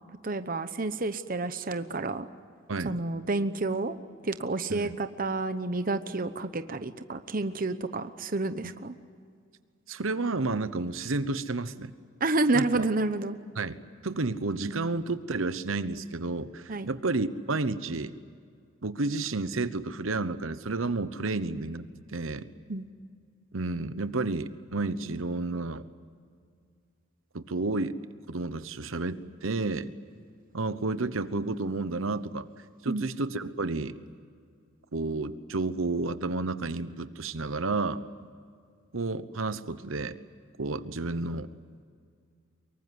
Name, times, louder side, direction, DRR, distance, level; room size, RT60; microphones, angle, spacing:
voice 1, 0.2-2.3 2.8-3.9 4.2-8.9 12.2-13.4 16.7-16.9 22.7-22.9 32.9-33.0, right 2 dB, 45° right, 10 dB, 0.9 m, -29 dB
voice 2, 9.9-11.9 12.5-12.9 13.6-13.8 14.0-18.1 18.8-22.5 23.5-25.9 27.3-28.0 28.3-29.9 30.5-32.5 32.8-34.0 34.9-38.0 38.9-40.2 40.6-41.5, right 3 dB, 75° right, 13 dB, 1.0 m, -31 dB
24.5 x 23.5 x 9.5 m, 2.1 s
head